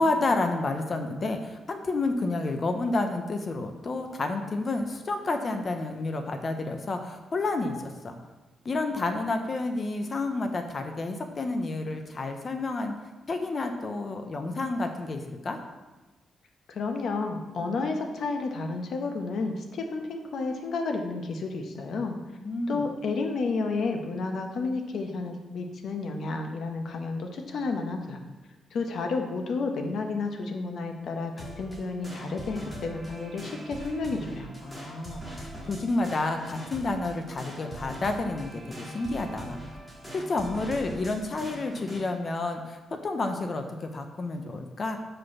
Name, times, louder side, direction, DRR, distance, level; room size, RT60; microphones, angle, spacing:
voice 1, 0.0-8.1 8.6-12.9 13.3-15.6 22.4-22.8 34.6-39.6 40.1-45.0, left 2 dB, 30° left, 6 dB, 0.6 m, -30 dB
voice 2, 16.7-22.2 22.7-28.2 28.7-34.5, left 3 dB, 55° left, 4 dB, 0.9 m, -31 dB
sound 1, 31.4-42.0, right 1 dB, 10° left, 1.8 m, -42 dB
6.3 x 5.1 x 5.9 m, 1.2 s
wide cardioid pair, 175°, 0 cm